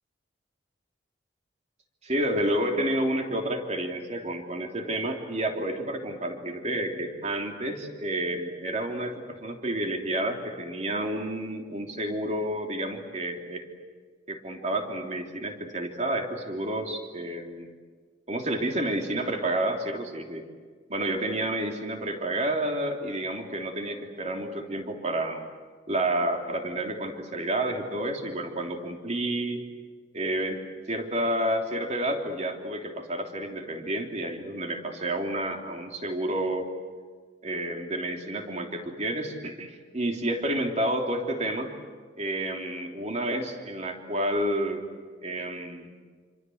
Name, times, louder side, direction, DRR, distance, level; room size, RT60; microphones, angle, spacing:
voice 1, 2.0-13.7 14.3-17.7 18.3-20.5 20.9-25.5 25.9-29.6 30.1-30.6 30.9-36.7 37.4-41.7 42.2-44.8 45.2-45.9, right 1 dB, 40° right, 3 dB, 3.3 m, -30 dB
28.0 x 25.5 x 8.0 m, 1.5 s
head